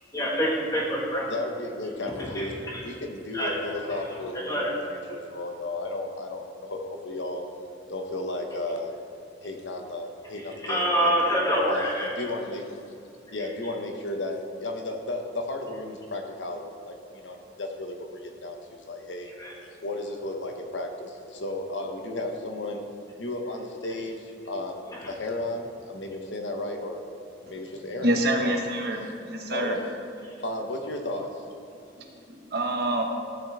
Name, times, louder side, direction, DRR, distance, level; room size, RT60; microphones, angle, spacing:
voice 1, 0.1-1.3 2.0-2.8 3.3-3.5 3.9-4.0 4.4-4.7 10.4-12.1 13.4-13.5 19.4-19.5 24.9-25.1, equal, 20° left, -4 dB, 1.6 m, -27 dB
voice 2, 1.3-4.5 5.1-7.4 7.9-8.9 9.4-11.1 11.6-11.8 12.2-12.7 13.3-19.3 19.8-22.8 23.2-27.0 27.4-28.1 28.4-28.6 29.5-29.8 30.4-31.4, left 2 dB, 90° left, 3 dB, 1.1 m, -34 dB
voice 3, 28.0-29.8 31.9-33.0, right 1 dB, 60° right, 2 dB, 1.1 m, -27 dB
14.0 x 5.9 x 3.6 m, 2.6 s
head